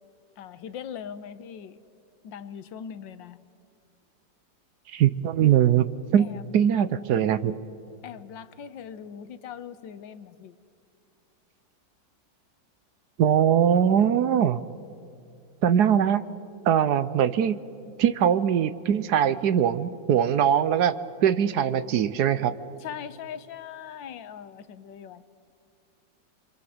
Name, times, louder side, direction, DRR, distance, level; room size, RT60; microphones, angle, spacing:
voice 1, 0.4-1.8 2.2-3.4 6.2-6.8 8.0-10.6 22.8-25.2, left 8 dB, 90° left, 13 dB, 1.6 m, -40 dB
voice 2, 4.9-5.9 6.1-7.5 13.2-14.6 15.6-16.3 16.7-17.6 18.0-20.9 21.2-22.5, right 9 dB, 65° right, 14 dB, 1.2 m, -21 dB
26.5 x 24.0 x 7.9 m, 2.5 s
omnidirectional pair, 2.0 m